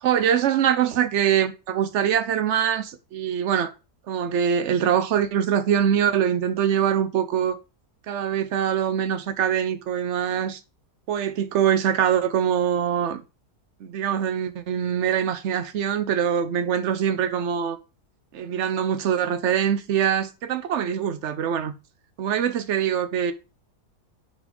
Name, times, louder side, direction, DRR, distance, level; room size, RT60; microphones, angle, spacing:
voice 1, 0.0-3.7 4.1-7.6 8.1-10.6 11.1-13.2 13.8-17.8 18.3-21.7 22.2-23.3, right 9 dB, 55° right, 0.9 m, -23 dB
5.0 x 5.0 x 5.3 m
omnidirectional pair, 1.7 m